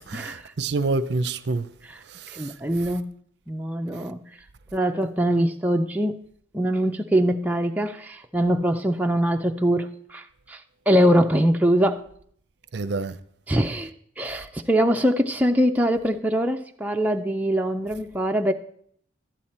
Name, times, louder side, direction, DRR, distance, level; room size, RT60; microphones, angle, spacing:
voice 1, 0.0-1.7 2.1-2.5 12.7-13.1, right 3 dB, 65° right, 0.5 m, -27 dB
voice 2, 2.3-3.1 3.5-4.2 4.7-6.2 6.5-10.6 10.9-12.0 13.5-13.9 14.2-18.5, equal, 10° right, 0.4 m, -23 dB
11.5 x 9.0 x 4.2 m
head